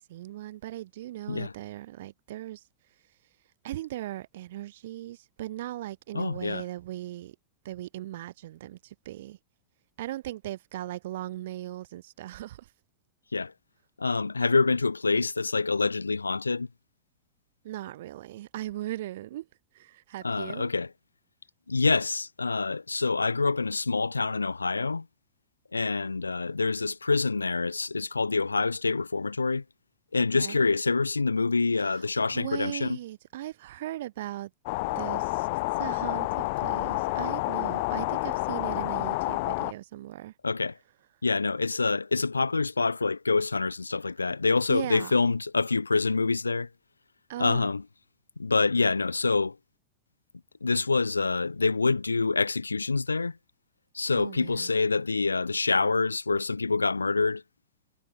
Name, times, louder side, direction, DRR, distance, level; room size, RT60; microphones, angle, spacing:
voice 1, 0.0-2.6 3.6-7.4 7.6-9.4 10.0-12.7 17.6-19.5 19.7-20.7 30.2-30.6 31.9-32.1 32.3-34.5 34.9-35.5 35.8-40.3 44.7-45.1 47.3-47.7 54.1-54.7, right 14 dB, 55° right, 4.6 m, -38 dB
voice 2, 6.1-6.6 13.3-13.5 14.0-16.7 20.2-20.9 21.7-25.0 25.7-29.6 30.1-33.0 40.4-40.7 41.2-46.7 47.4-47.8 48.4-49.5 50.6-53.4 53.9-57.4, left 4 dB, 80° left, 1.7 m, -26 dB
sound 1, 34.7-39.7, left 25 dB, 50° left, 4.6 m, -29 dB
figure-of-eight pair, 90°, 0 cm